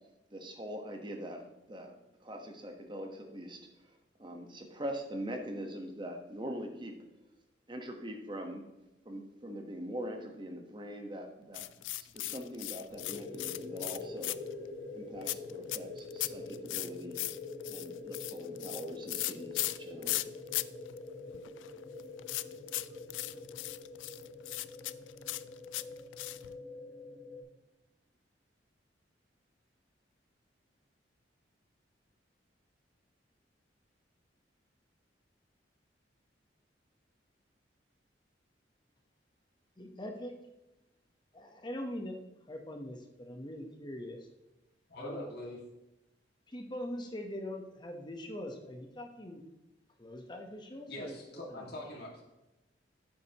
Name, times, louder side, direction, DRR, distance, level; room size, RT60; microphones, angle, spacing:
voice 1, 0.3-1.9 2.2-3.9 4.2-6.9 7.7-8.7 9.0-14.4 14.9-17.2 17.7-20.3, equal, 25° right, 3 dB, 1.2 m, -43 dB
sound 1, 11.5-14.7 15.2-20.6 20.9-21.0 21.3-26.6, left 18 dB, 85° left, 0.3 m, -37 dB
sound 2, 12.9-27.4, left 3 dB, ahead, 2.7 m, -45 dB
voice 2, 39.8-40.4 41.3-44.3 45.0-45.3 46.5-49.4 50.0-51.7, left 1 dB, 25° left, 3 dB, 1.1 m, -42 dB
voice 3, 44.9-45.6 50.9-52.2, left 1 dB, 55° left, -4 dB, 2.2 m, -43 dB
11.5 x 8.6 x 3.0 m, 1.0 s
head